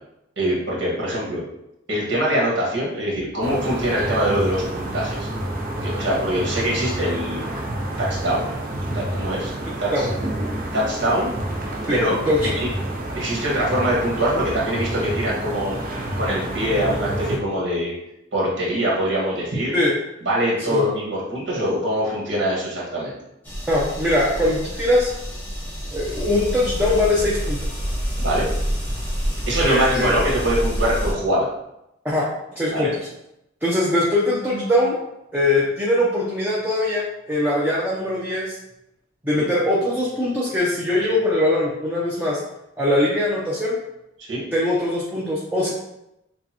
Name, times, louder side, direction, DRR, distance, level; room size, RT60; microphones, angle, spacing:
voice 1, 0.4-1.4 1.9-5.3 5.8-7.4 8.0-8.5 8.9-9.5 9.8-10.1 10.7-11.3 11.9-12.2 12.5-12.7 13.1-15.8 16.2-17.9 18.3-19.7 20.2-23.2 28.2-28.5 29.5-31.5 32.7-32.9 39.3-39.5 44.3-44.4, equal, 65° right, -5 dB, 1.6 m, -23 dB
sound 1, 3.4-17.4, right 1 dB, 50° right, 0.7 m, -29 dB
sound 2, 23.4-31.1, equal, 10° left, 1.0 m, -27 dB
voice 2, 23.7-25.1 25.9-27.6 29.6-30.2 32.0-32.3 32.6-33.1 33.6-35.0 35.3-38.6 39.2-42.4 42.8-43.8 44.5-45.7, left 1 dB, 10° right, -6 dB, 0.7 m, -21 dB
6.4 x 2.3 x 2.9 m, 0.85 s
head